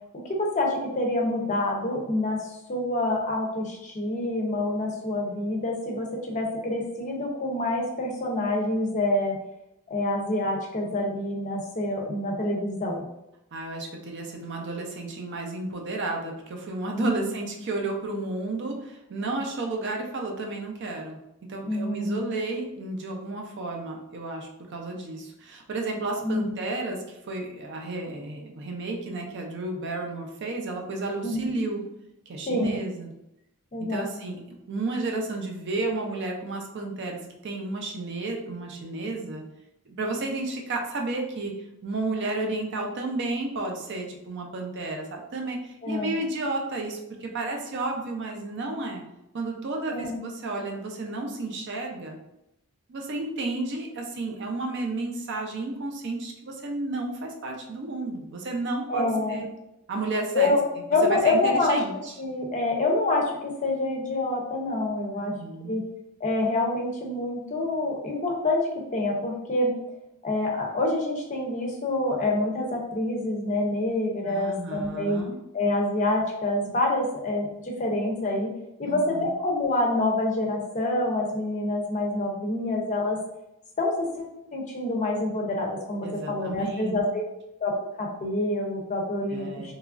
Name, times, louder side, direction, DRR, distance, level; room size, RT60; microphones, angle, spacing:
voice 1, 0.2-9.4 9.9-13.0 17.0-17.1 21.7-22.2 26.2-26.5 31.2-31.6 32.5-32.8 33.7-34.1 45.8-46.2 49.9-50.2 58.9-59.4 60.3-60.6 60.9-61.8 62.2-65.3 65.6-65.8 66.2-69.7 70.2-75.2 75.5-78.5 78.8-83.2 83.8-87.2 87.6-89.7, left 2 dB, 35° left, 0 dB, 0.5 m, -27 dB
voice 2, 13.5-21.2 21.5-27.0 27.3-31.8 32.3-33.1 33.9-39.4 39.9-41.5 41.8-49.0 49.3-52.2 52.9-59.5 59.9-60.5 61.0-62.1 65.2-65.8 74.2-75.4 78.8-79.3 86.0-87.1 89.3-89.7, right 2 dB, 55° right, 1 dB, 0.5 m, -32 dB
2.9 x 2.3 x 2.4 m, 0.86 s
head